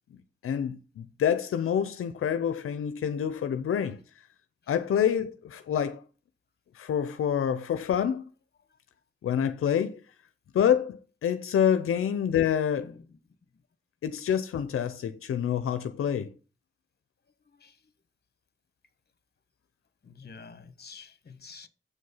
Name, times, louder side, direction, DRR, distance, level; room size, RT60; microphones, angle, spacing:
voice 1, 0.4-4.0 4.7-6.0 6.7-8.3 9.2-10.0 10.5-12.9 14.0-16.3, left 8 dB, 90° left, 0.7 m, -27 dB
voice 2, 12.8-13.2 17.4-17.9 20.0-21.7, left 5 dB, 50° left, 1.4 m, -49 dB
7.6 x 6.5 x 5.5 m
cardioid pair, 55°, 21 cm